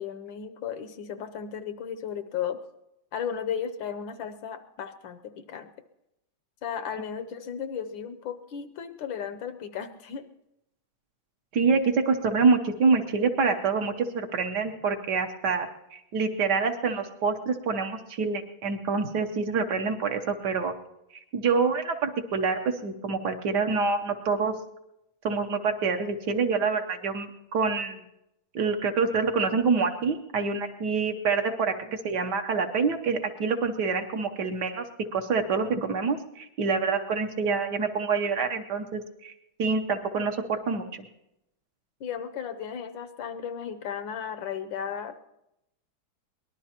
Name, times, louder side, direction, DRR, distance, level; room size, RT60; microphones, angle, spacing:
voice 1, 0.0-2.6 3.1-5.7 6.6-10.3 31.8-32.0 42.0-45.2, left 8 dB, 75° left, 9 dB, 1.4 m, -35 dB
voice 2, 11.5-20.7 21.3-24.5 25.2-28.0 28.5-31.7 32.0-34.8 35.1-39.3 39.6-41.1, right 4 dB, 65° right, 6 dB, 1.4 m, -26 dB
23.0 x 19.0 x 2.9 m, 0.87 s
omnidirectional pair, 2.2 m